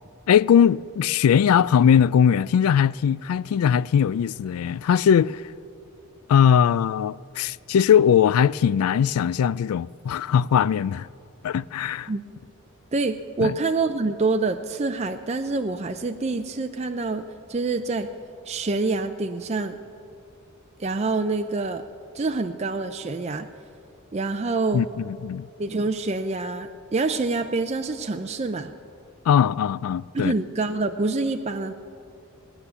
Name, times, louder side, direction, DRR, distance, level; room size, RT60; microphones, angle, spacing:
voice 1, 0.3-5.4 6.3-11.1 11.4-12.1 13.4-13.5 24.7-25.5 29.3-30.3, left 8 dB, 80° left, 0.3 m, -20 dB
voice 2, 12.9-17.2 17.5-18.1 18.5-19.8 20.8-21.8 22.1-23.5 24.1-24.9 25.6-28.7 30.1-31.7, right 3 dB, 30° right, 0.4 m, -26 dB
19.5 x 9.9 x 6.9 m
head